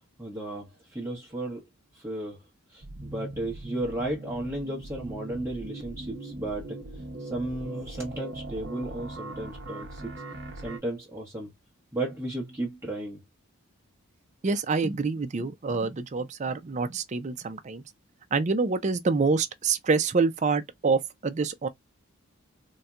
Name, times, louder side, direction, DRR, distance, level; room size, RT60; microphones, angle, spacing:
voice 1, 0.2-1.7 1.9-2.4 2.7-6.8 7.2-10.1 10.6-11.5 11.9-13.2, right 1 dB, 10° right, 0.9 m, -34 dB
sound 1, 2.8-10.8, right 2 dB, 55° right, 0.8 m, -40 dB
voice 2, 14.4-17.8 18.3-21.7, right 4 dB, 35° right, 0.4 m, -26 dB
4.1 x 2.2 x 2.4 m
head